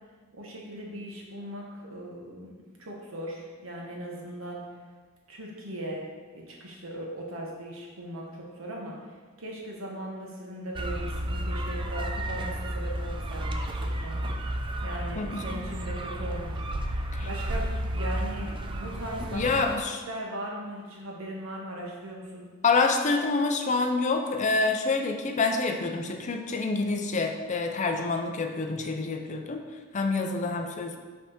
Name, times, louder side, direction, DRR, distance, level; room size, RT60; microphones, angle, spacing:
voice 1, 0.3-2.5 2.8-4.6 5.3-6.1 6.3-14.2 14.5-22.5, right 1 dB, 70° right, -2 dB, 1.3 m, -39 dB
sound 1, 10.7-19.8, right 1 dB, 25° right, 0.4 m, -32 dB
voice 2, 15.2-15.6 17.1-17.3 19.3-20.0 22.6-29.6 29.9-31.0, left 3 dB, 35° left, 4 dB, 0.5 m, -27 dB
5.5 x 3.4 x 5.6 m, 1.4 s
head